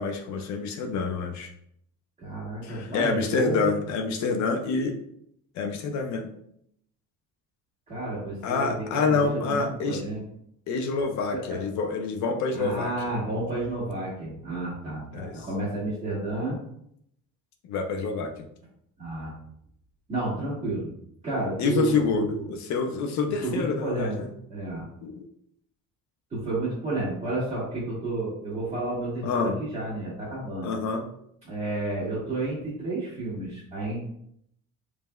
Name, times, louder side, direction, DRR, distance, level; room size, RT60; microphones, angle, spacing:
voice 1, 0.0-1.5 2.6-5.0 5.6-6.3 8.4-10.0 10.7-12.9 15.1-15.5 17.7-18.5 21.6-24.3 25.0-25.3 29.2-29.6 30.6-31.1, left 4 dB, 60° left, 4 dB, 0.6 m, -27 dB
voice 2, 2.2-3.8 7.9-10.2 11.3-11.6 12.5-16.6 19.0-19.3 20.1-20.9 21.2-22.4 23.4-24.2 24.5-24.8 26.3-30.7 31.4-34.0, right 2 dB, 20° right, -12 dB, 1.5 m, -31 dB
5.1 x 3.3 x 2.2 m, 0.72 s
cardioid pair, 160°, 32 cm